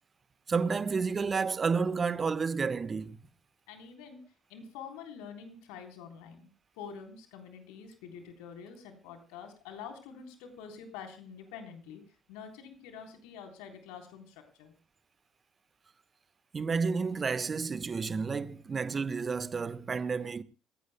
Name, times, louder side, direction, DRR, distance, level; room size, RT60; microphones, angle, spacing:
voice 1, 0.5-3.2 16.5-20.4, right 5 dB, 40° right, 1.2 m, -30 dB
voice 2, 3.7-4.2 4.5-6.5 6.7-12.0 12.3-14.7, left 6 dB, 75° left, 3.8 m, -46 dB
29.5 x 16.5 x 2.2 m
hypercardioid pair, 50°, 0 cm